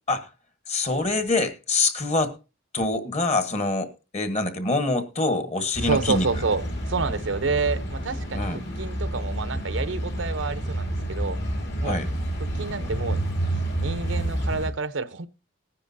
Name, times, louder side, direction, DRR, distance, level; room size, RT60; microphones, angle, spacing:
voice 1, 0.7-2.4 2.7-6.3 8.3-8.6 11.8-12.1, left 2 dB, 35° left, 1.4 m, -25 dB
sound 1, 5.7-14.7, right 1 dB, 60° left, 2.9 m, -29 dB
voice 2, 5.9-8.5 8.8-11.4 11.8-12.0 12.5-13.2 13.7-15.3, right 4 dB, 90° right, 0.8 m, -28 dB
19.0 x 10.0 x 2.7 m
head